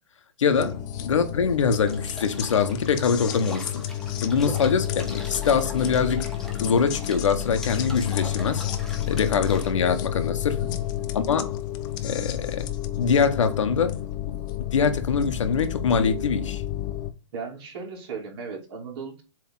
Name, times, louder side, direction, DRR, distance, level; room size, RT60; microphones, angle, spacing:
voice 1, 0.4-0.7 1.0-3.8 4.2-6.3 6.6-8.6 9.1-10.6 11.1-11.6 12.0-12.7 13.0-14.0 14.3-14.4 14.7-16.6, left 6 dB, 80° left, 1.2 m, -23 dB
sound 1, 0.5-17.1, left 12 dB, 40° left, 0.9 m, -30 dB
sound 2, 1.9-9.7, left 1 dB, 5° left, 1.5 m, -41 dB
voice 2, 10.4-10.7 17.3-19.2, right 5 dB, 55° right, 2.9 m, -36 dB
7.5 x 3.5 x 3.8 m
hypercardioid pair, 145°, 16 cm